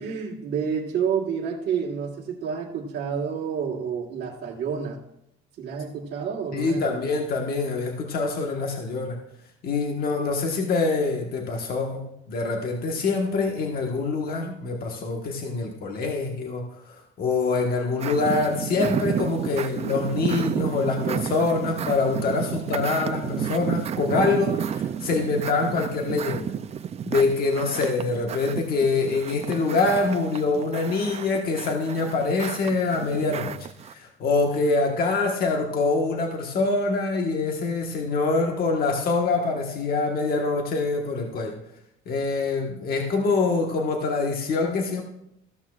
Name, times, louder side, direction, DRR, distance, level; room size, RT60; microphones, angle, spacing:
voice 1, 0.0-5.0 5.6-7.2, right 7 dB, 55° right, -4 dB, 1.6 m, -29 dB
voice 2, 6.5-9.2 9.6-26.5 27.0-33.6 33.9-41.5 42.1-45.0, left 3 dB, 45° left, 1 dB, 1.4 m, -25 dB
sound 1, 18.0-33.9, right 8 dB, 30° right, 0.4 m, -31 dB
14.5 x 12.5 x 2.4 m, 0.80 s
cardioid pair, 145°, 21 cm